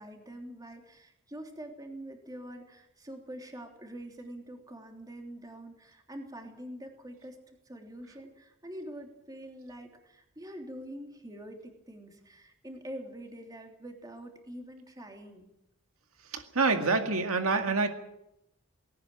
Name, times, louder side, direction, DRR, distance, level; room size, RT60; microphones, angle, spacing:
voice 1, 0.0-7.4 7.6-15.5, right 1 dB, 15° right, 3 dB, 3.2 m, -45 dB
voice 2, 16.3-17.9, right 3 dB, 85° right, 6 dB, 2.1 m, -26 dB
19.0 x 17.5 x 9.0 m, 0.84 s
head